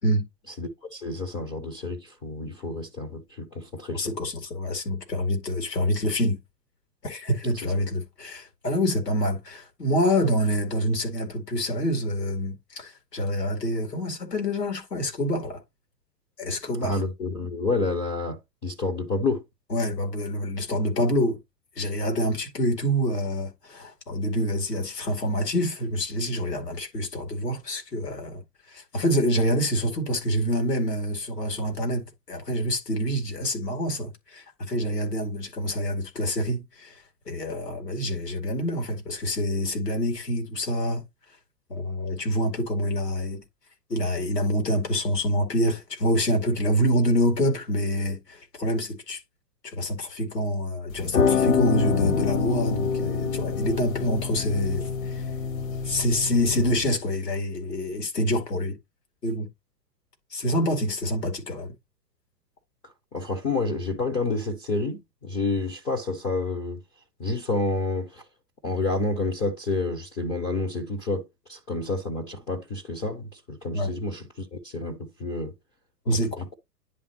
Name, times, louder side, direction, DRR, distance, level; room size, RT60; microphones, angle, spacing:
voice 1, 0.6-4.0 7.6-7.7 16.8-19.4 63.1-66.8 67.2-68.2 68.6-75.5 76.1-76.5, left 2 dB, 10° left, 0.5 m, -29 dB
voice 2, 3.9-6.4 7.0-15.6 16.4-17.0 19.7-21.4 21.8-28.4 28.7-41.1 41.7-43.4 43.9-49.2 49.6-55.2 55.8-58.8 59.2-59.5 60.3-61.7 73.7-73.9 76.1-76.4, equal, 75° left, 2.5 m, -26 dB
sound 1, 50.9-56.9, left 6 dB, 55° left, 1.3 m, -26 dB
10.5 x 3.6 x 2.9 m
figure-of-eight pair, 110°, 48 cm